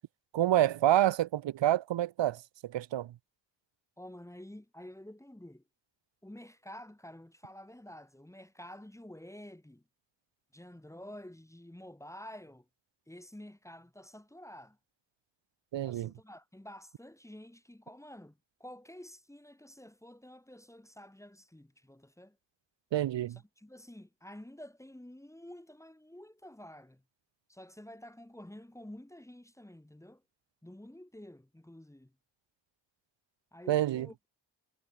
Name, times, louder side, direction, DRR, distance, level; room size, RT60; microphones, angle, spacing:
voice 1, 0.3-3.1 15.7-16.1 22.9-23.4 33.7-34.1, right 13 dB, 80° right, 0.8 m, -28 dB
voice 2, 4.0-5.6 6.2-9.8 10.5-12.7 13.1-14.8 15.9-22.4 23.3-27.0 27.5-30.2 30.6-32.1 33.5-34.1, left 1 dB, 5° left, 2.4 m, -50 dB
wide cardioid pair, 130°, 44 cm